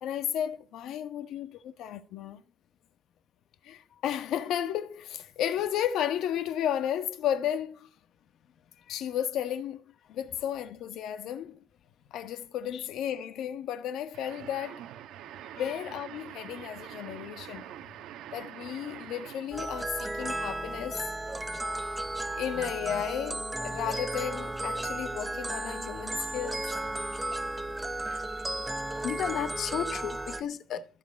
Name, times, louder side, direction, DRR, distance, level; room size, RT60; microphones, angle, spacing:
voice 1, 0.0-2.4 3.6-7.9 8.9-9.8 10.1-11.6 12.1-14.9 15.5-17.7 18.3-21.0 22.3-26.7, left 10 dB, 80° left, 1.6 m, -33 dB
sound 1, 14.1-19.6, right 11 dB, 85° right, 1.2 m, -45 dB
sound 2, 19.5-30.4, right 2 dB, 10° right, 0.8 m, -34 dB
voice 2, 29.0-30.9, left 9 dB, 55° left, 0.9 m, -34 dB
14.5 x 7.5 x 9.6 m
cardioid pair, 170°, 0 cm